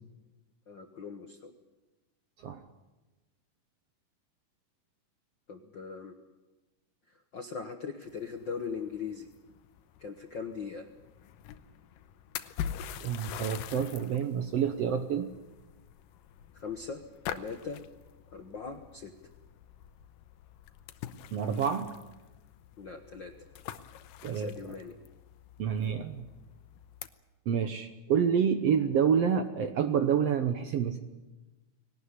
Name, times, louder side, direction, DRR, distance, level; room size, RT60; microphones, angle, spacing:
voice 1, 0.7-1.5 5.5-6.1 7.3-9.3 10.0-10.9 16.5-17.0 17.3-17.8 18.3-19.1 22.8-23.3 24.3-24.9, left 5 dB, 60° left, 5 dB, 1.2 m, -40 dB
sound 1, 8.0-27.1, left 10 dB, 90° left, 2.6 m, -45 dB
voice 2, 13.0-15.3 21.3-21.9 24.2-24.5 25.6-26.2 27.5-31.0, right 7 dB, 65° right, 8 dB, 1.7 m, -28 dB
20.5 x 18.5 x 9.8 m, 1.1 s
omnidirectional pair, 3.8 m